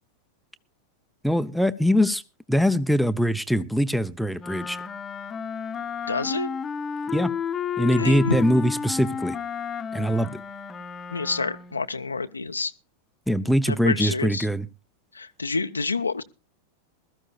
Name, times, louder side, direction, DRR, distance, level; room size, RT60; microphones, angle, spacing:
voice 1, 1.2-2.2 2.5-4.8 7.1-7.3 7.8-9.4 9.9-10.4 13.3-14.7, equal, ahead, 0.6 m, -22 dB
Wind instrument woodwind instrument, 4.4-11.8, left 7 dB, 20° left, 0.9 m, -32 dB
voice 2, 6.1-6.6 8.0-8.4 11.1-12.7 13.7-14.5 15.1-16.2, left 3 dB, 80° left, 0.6 m, -28 dB
21.0 x 13.5 x 2.3 m
figure-of-eight pair, 90°, 0 cm